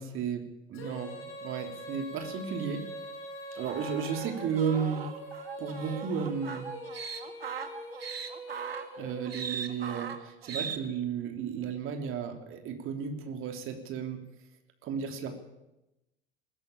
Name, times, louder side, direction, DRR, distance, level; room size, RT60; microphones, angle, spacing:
voice 1, 0.0-2.8 3.5-5.1 5.6-6.7 8.9-14.2 14.8-15.4, right 7 dB, 45° right, 5 dB, 3.4 m, -34 dB
Female singing, 0.7-9.9, equal, 45° left, 6.6 m, -43 dB
sound 1, 3.6-10.8, right 6 dB, 80° right, 1.9 m, -39 dB
21.0 x 18.5 x 8.7 m, 0.92 s
figure-of-eight pair, 70°, 29 cm